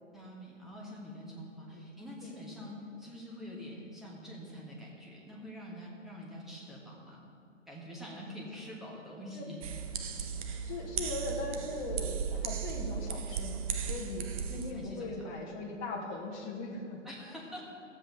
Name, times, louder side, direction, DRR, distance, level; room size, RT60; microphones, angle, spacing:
voice 1, 0.1-7.2 7.7-9.6 14.5-15.6 16.0-16.2 17.0-17.6, equal, ahead, -4 dB, 1.3 m, -46 dB
sound 1, 9.6-14.7, right 7 dB, 30° right, 0.6 m, -36 dB
voice 2, 10.5-17.0, left 2 dB, 25° left, -1 dB, 1.2 m, -39 dB
14.0 x 7.5 x 3.9 m, 2.5 s
figure-of-eight pair, 125°, 37 cm